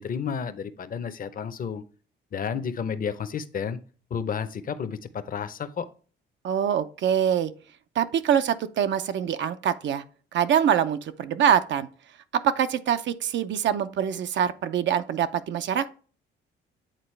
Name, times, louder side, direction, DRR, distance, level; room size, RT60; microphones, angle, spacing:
voice 1, 0.0-1.8 2.3-3.8 4.1-5.9, left 7 dB, 45° left, 0.7 m, -31 dB
voice 2, 6.4-7.5 8.0-10.0 10.3-11.9 12.3-15.9, right 9 dB, 65° right, 0.6 m, -24 dB
9.0 x 3.9 x 3.2 m
cardioid pair, 90°, 20 cm